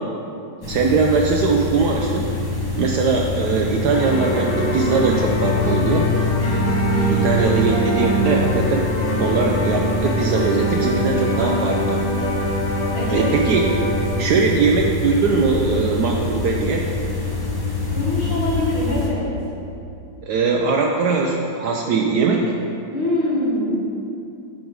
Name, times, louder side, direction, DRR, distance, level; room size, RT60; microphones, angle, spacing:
sound 1, 0.6-19.1, left 3 dB, 25° left, 0.5 m, -25 dB
voice 1, 0.7-2.3 2.8-6.0 7.1-8.9 9.2-12.0 13.1-13.6 14.2-16.8 20.2-22.4, right 4 dB, 75° right, 0 dB, 0.9 m, -20 dB
sound 2, 3.9-14.1, right 2 dB, 65° left, 2.0 m, -24 dB
voice 2, 12.9-13.3 17.9-19.3 22.9-23.7, left 1 dB, 85° left, -5 dB, 2.6 m, -23 dB
8.9 x 5.1 x 4.7 m, 2.6 s
omnidirectional pair, 2.2 m